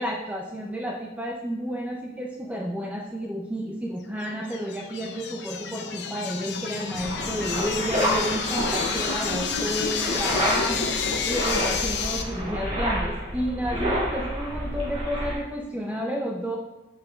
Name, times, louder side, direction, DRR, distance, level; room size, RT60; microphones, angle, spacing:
voice 1, 0.0-16.6, equal, 10° right, -1 dB, 0.4 m, -31 dB
sound 1, 4.2-12.2, left 5 dB, 65° left, 0.6 m, -30 dB
sound 2, 6.9-15.3, equal, 35° right, 2.1 m, -29 dB
7.1 x 6.6 x 2.3 m, 0.98 s
head